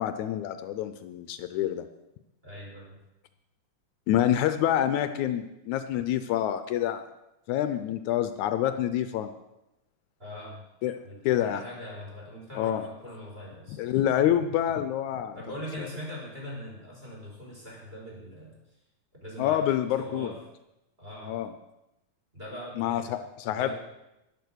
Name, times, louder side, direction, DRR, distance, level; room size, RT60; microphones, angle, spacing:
voice 1, 0.0-1.9 4.1-7.0 7.5-9.3 10.8-10.9 11.2-11.6 12.6-12.9 13.8-15.4 19.4-20.3 21.3-21.5 22.8-23.7, left 11 dB, 80° left, 10 dB, 2.0 m, -27 dB
voice 2, 2.4-3.0 10.2-10.7 11.0-13.8 15.3-18.8 19.1-19.6 20.0-20.4 21.0-21.3 22.3-23.2 23.5-23.7, equal, 20° right, -4 dB, 4.8 m, -41 dB
12.0 x 11.0 x 6.3 m, 0.92 s
omnidirectional pair, 3.4 m